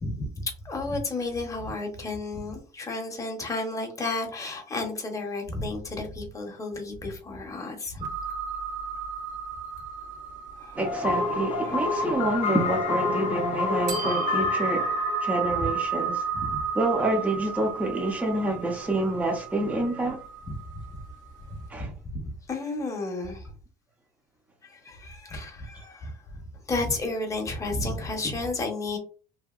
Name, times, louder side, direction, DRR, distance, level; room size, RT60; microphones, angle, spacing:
voice 1, 0.0-8.1 10.6-10.8 15.6-15.7 16.3-16.6 20.5-20.6 21.8-23.5 24.6-26.4 26.7-29.0, left 2 dB, 20° left, 0.8 m, -32 dB
sound 1, 8.0-13.2 13.9-21.4, right 6 dB, 60° right, 0.9 m, -33 dB
voice 2, 10.7-16.2 16.8-20.2 21.7-21.9, right 2 dB, 10° right, 0.6 m, -27 dB
sound 2, 10.8-16.7, left 4 dB, 50° left, 0.6 m, -29 dB
2.8 x 2.7 x 2.3 m
cardioid pair, 135°, 15 cm